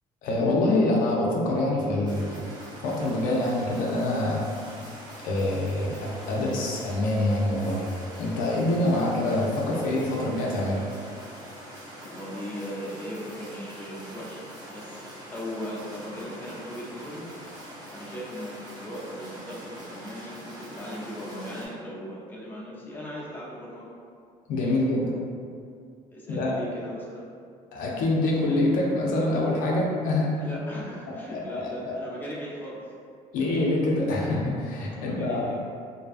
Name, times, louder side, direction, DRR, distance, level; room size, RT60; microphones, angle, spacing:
voice 1, 0.2-2.4 2.8-4.4 5.2-7.9 8.2-10.8 24.5-25.1 26.3-26.5 27.7-30.4 31.3-31.9 33.3-35.5, left 1 dB, 70° left, -3 dB, 0.5 m, -25 dB
sound 1, 2.0-21.7, equal, 30° right, 0.8 m, -44 dB
voice 2, 12.0-17.3 17.9-23.9 24.6-24.7 26.1-27.3 30.3-32.9 34.9-35.6, equal, 15° left, -6 dB, 0.6 m, -38 dB
2.6 x 2.2 x 2.4 m, 2.3 s
cardioid pair, 105°, 15 cm